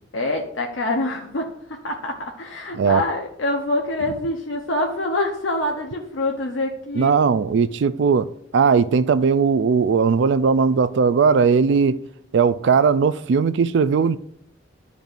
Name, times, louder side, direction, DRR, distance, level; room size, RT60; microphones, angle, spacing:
voice 1, 0.1-1.4 1.8-7.1, left 2 dB, 90° left, 0.9 m, -25 dB
voice 2, 6.9-8.3 8.5-12.0 12.3-14.2, right 5 dB, 65° right, 0.4 m, -18 dB
12.0 x 5.1 x 2.6 m
head